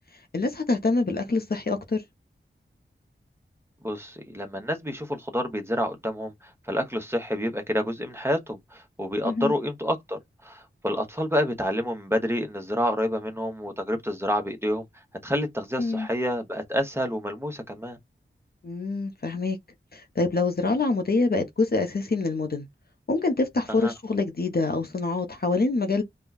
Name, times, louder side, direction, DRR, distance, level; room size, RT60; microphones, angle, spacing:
voice 1, 0.3-2.0 9.2-9.5 15.8-16.1 18.6-19.6 19.9-22.7 23.1-26.0, left 3 dB, 50° left, 0.8 m, -25 dB
voice 2, 3.8-14.8 15.2-18.0 23.8-23.9, equal, 10° right, 1.1 m, -28 dB
5.3 x 2.3 x 2.4 m
wide cardioid pair, 60°, 20 cm